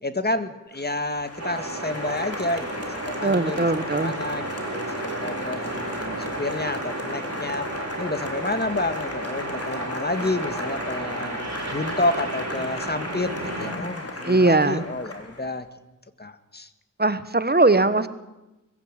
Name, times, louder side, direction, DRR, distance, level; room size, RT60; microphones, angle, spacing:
voice 1, 0.0-4.4 4.7-5.9 6.4-7.7 8.0-11.4 11.7-15.7 16.2-16.7, left 2 dB, 30° left, 10 dB, 1.8 m, -29 dB
Applause, 0.7-15.5, left 2 dB, 50° left, 3.9 m, -36 dB
sound 1, 1.4-13.7, right 2 dB, 55° right, 4.7 m, -33 dB
voice 2, 3.2-4.1 14.2-14.8 17.0-18.1, right 2 dB, 30° right, 13 dB, 1.2 m, -20 dB
21.5 x 15.5 x 9.1 m, 1.0 s
wide cardioid pair, 55°, 31 cm